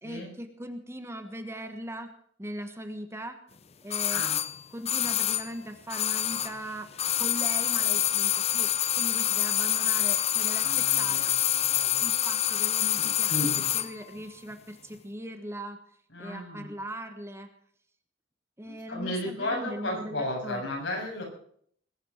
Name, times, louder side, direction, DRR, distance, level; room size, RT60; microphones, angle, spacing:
voice 1, 0.0-2.1 2.4-3.4 3.8-4.2 4.7-6.9 7.2-8.7 8.9-11.3 12.0-15.8 16.2-17.5 18.6-20.6, right 1 dB, 15° right, 7 dB, 1.3 m, -39 dB
sound 1, 3.9-6.7 6.9-13.9 14.2-14.3, left 10 dB, 35° left, 0.7 m, -26 dB
voice 2, 10.6-12.1 13.0-13.6 16.1-16.7 18.6-21.2, left 1 dB, 70° left, 0 dB, 7.2 m, -34 dB
20.5 x 9.0 x 6.5 m, 0.62 s
head